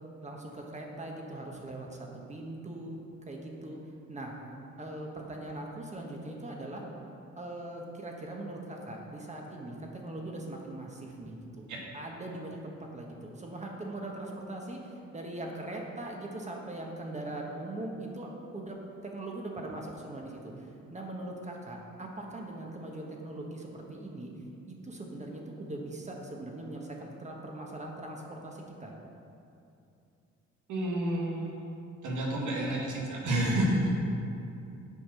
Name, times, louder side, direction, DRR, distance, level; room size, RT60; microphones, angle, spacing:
voice 1, 0.2-3.0 3.3-3.8 4.1-4.3 4.8-6.8 7.4-11.7 11.9-18.8 19.0-24.3 24.7-28.9, right 1 dB, 25° right, 0 dB, 1.4 m, -41 dB
voice 2, 30.7-31.5 32.0-34.0, right 1 dB, 75° right, -2 dB, 1.9 m, -29 dB
8.5 x 5.1 x 6.3 m, 2.7 s
cardioid pair, 90°, 30 cm